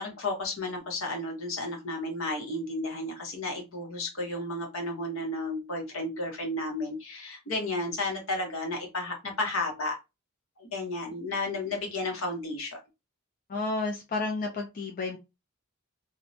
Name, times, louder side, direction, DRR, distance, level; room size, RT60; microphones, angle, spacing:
voice 1, 0.0-9.9 10.6-12.8, left 2 dB, 75° left, 1 dB, 1.0 m, -33 dB
voice 2, 13.5-15.2, left 3 dB, 40° left, 1 dB, 0.4 m, -31 dB
2.6 x 2.1 x 2.6 m, 0.25 s
head